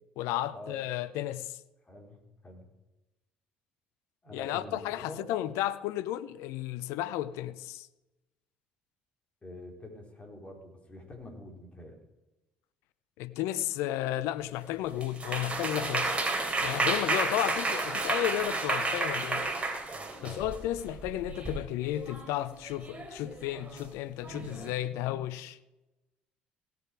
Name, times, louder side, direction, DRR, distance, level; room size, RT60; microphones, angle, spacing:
voice 1, 0.2-1.6 4.3-7.9 13.2-16.2 16.6-19.5 20.2-25.6, left 13 dB, 70° left, 0.5 m, -33 dB
voice 2, 1.9-2.7 4.2-5.3 9.4-12.0 20.2-20.5, left 1 dB, 25° left, 4.1 m, -46 dB
sound 1, 15.0-21.6 21.9-22.3 22.6-23.9 24.2-24.7, right 3 dB, 25° right, 3.2 m, -31 dB
17.5 x 6.9 x 4.7 m
hypercardioid pair, 55°, 5 cm